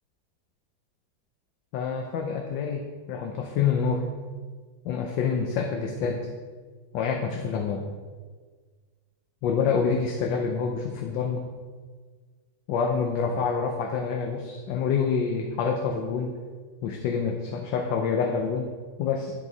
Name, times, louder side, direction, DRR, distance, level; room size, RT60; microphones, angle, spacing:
voice 1, 1.7-4.1 4.8-6.3 6.9-7.8 9.4-11.5 12.7-16.4 16.8-18.7 19.0-19.3, left 6 dB, 75° left, 2 dB, 1.3 m, -27 dB
9.9 x 4.6 x 4.0 m, 1.5 s
omnidirectional pair, 2.1 m